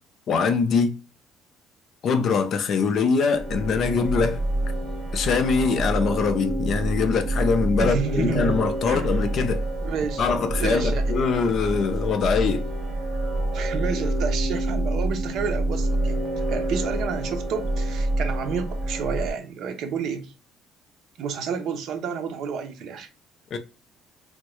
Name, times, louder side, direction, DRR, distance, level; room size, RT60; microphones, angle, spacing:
voice 1, 0.3-0.9 2.0-4.4 5.1-9.6 10.2-12.7 23.5-23.6, left 5 dB, 45° left, 0.5 m, -23 dB
sound 1, 3.3-19.3, right 1 dB, 25° right, 1.0 m, -27 dB
voice 2, 7.8-8.5 8.8-9.1 9.8-10.3 10.5-11.1 13.5-20.3 21.2-23.1, right 6 dB, 60° right, 0.6 m, -30 dB
3.5 x 2.2 x 3.0 m
cardioid pair, 160°, 0 cm